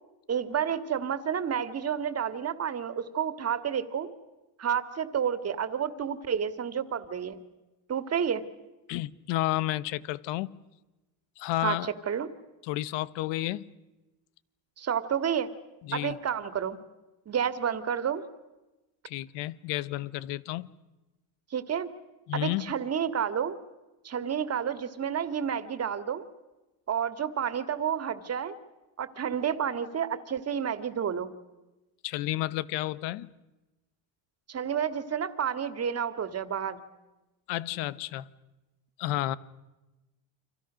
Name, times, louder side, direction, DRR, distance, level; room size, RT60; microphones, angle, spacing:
voice 1, 0.3-4.1 4.6-7.4 7.9-8.4 11.6-12.3 14.8-15.5 15.9-16.8 17.3-18.2 21.5-21.9 22.3-23.5 24.0-26.2 26.9-28.6 29.0-31.3 34.5-36.8, right 8 dB, 35° right, 12 dB, 2.1 m, -30 dB
voice 2, 8.9-10.5 11.4-11.9 12.6-13.7 15.8-16.2 19.0-20.7 22.3-22.7 32.0-33.3 37.5-38.3 39.0-39.4, left 16 dB, 80° left, 18 dB, 1.2 m, -31 dB
30.0 x 26.0 x 6.4 m, 1.1 s
cardioid pair, 110°, 43 cm